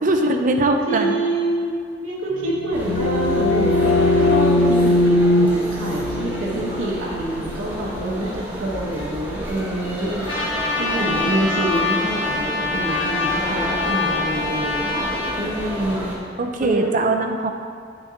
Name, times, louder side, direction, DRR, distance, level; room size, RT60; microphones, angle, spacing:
voice 1, 0.0-1.2 10.9-11.4 16.4-17.5, right 2 dB, 40° right, 4 dB, 0.5 m, -21 dB
voice 2, 0.9-1.7 2.0-15.1 15.4-16.1 16.6-17.0, right 1 dB, 80° right, -6 dB, 1.2 m, -26 dB
sound 1, 2.4-8.0, left 1 dB, 85° left, 0.6 m, -20 dB
sound 2, 2.7-16.2, equal, 10° right, 1.3 m, -31 dB
Trumpet, 10.3-15.4, left 3 dB, 25° left, 1.4 m, -25 dB
9.1 x 6.8 x 2.8 m, 2.1 s
head